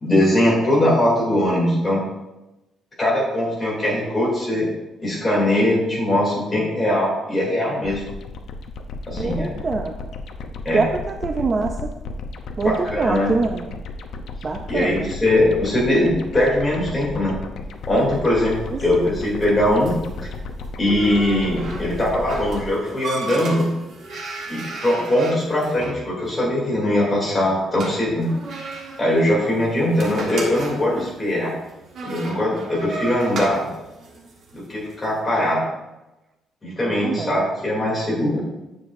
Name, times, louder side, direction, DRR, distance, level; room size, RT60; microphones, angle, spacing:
voice 1, 0.0-2.0 3.0-4.7 5.0-8.0 9.1-9.6 10.6-10.8 12.6-13.3 14.7-17.4 17.9-19.9 20.8-23.7 24.5-28.3 29.0-31.5 32.0-33.7 34.5-35.6 36.6-38.4, left 1 dB, 15° left, -5 dB, 2.6 m, -21 dB
sound 1, 7.8-22.7, left 3 dB, 55° left, 0.6 m, -34 dB
voice 2, 9.2-9.9 10.7-11.9 12.6-12.7 13.0-13.7 14.4-15.1 18.7-19.0 37.0-37.4, right 4 dB, 25° right, 4 dB, 0.4 m, -24 dB
sound 2, 17.8-35.1, right 2 dB, 45° right, 1.3 m, -35 dB
9.4 x 7.2 x 2.6 m, 1.0 s
cardioid pair, 180°, 0 cm